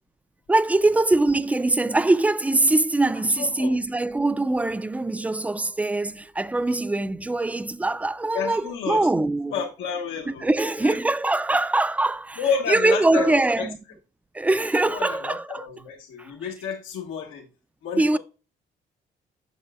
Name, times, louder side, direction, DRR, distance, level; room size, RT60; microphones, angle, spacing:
voice 1, 0.5-9.5 10.3-12.4 12.7-13.8 14.3-15.7 16.2-16.3 18.0-18.2, right 2 dB, 5° right, 0.3 m, -22 dB
voice 2, 3.4-3.8 8.3-9.1 9.5-11.0 12.4-13.7 14.9-17.4 17.8-18.2, left 6 dB, 85° left, 1.1 m, -30 dB
7.0 x 6.6 x 2.3 m
cardioid pair, 90°, 20 cm